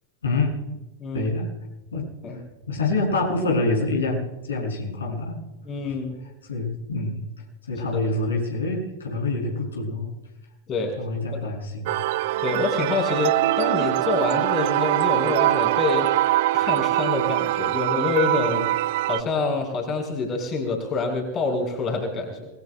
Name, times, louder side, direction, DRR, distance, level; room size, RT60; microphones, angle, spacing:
voice 1, 0.2-0.7 1.1-1.5 1.9-2.1 2.7-5.4 5.9-6.0 6.5-7.2 7.7-10.1 11.0-12.0 12.3-12.4, left 2 dB, 70° left, -2 dB, 6.8 m, -26 dB
voice 2, 5.6-6.2 7.9-8.0 10.7-10.9 11.3-11.4 12.4-16.1 16.5-18.7 19.1-22.5, left 3 dB, 30° left, 1 dB, 5.0 m, -26 dB
sound 1, 11.9-19.2, right 16 dB, 50° right, 0.4 m, -23 dB
28.0 x 20.5 x 2.3 m, 1.1 s
figure-of-eight pair, 90°, 0 cm